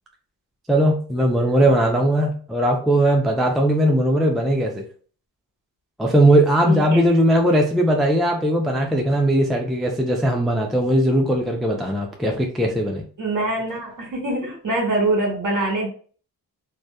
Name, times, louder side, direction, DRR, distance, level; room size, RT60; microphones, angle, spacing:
voice 1, 0.7-4.8 6.0-13.0, right 1 dB, ahead, 1 dB, 0.4 m, -19 dB
voice 2, 6.7-7.1 13.2-15.9, right 2 dB, 45° right, 0 dB, 1.3 m, -24 dB
2.6 x 2.2 x 2.2 m, 0.43 s
supercardioid pair, 55°, 44 cm